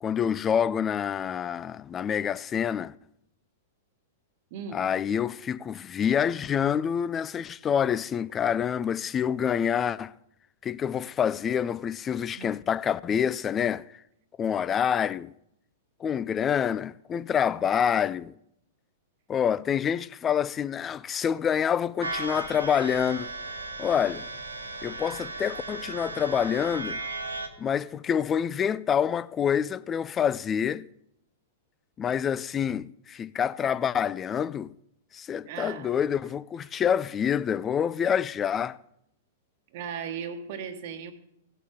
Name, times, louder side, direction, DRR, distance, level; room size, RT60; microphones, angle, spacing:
voice 1, 0.0-3.0 4.7-10.1 10.6-13.9 14.4-15.3 16.0-18.3 19.3-23.3 23.8-24.3 24.8-27.0 27.6-30.9 32.0-34.7 35.1-38.8, left 8 dB, 20° left, 0.3 m, -27 dB
voice 2, 4.5-4.9 12.3-12.5 35.4-36.0 39.7-41.1, right 7 dB, 50° right, 1.2 m, -37 dB
sound 1, 22.0-27.5, right 3 dB, 80° right, 1.4 m, -36 dB
17.5 x 6.6 x 3.6 m
figure-of-eight pair, 100°, 0 cm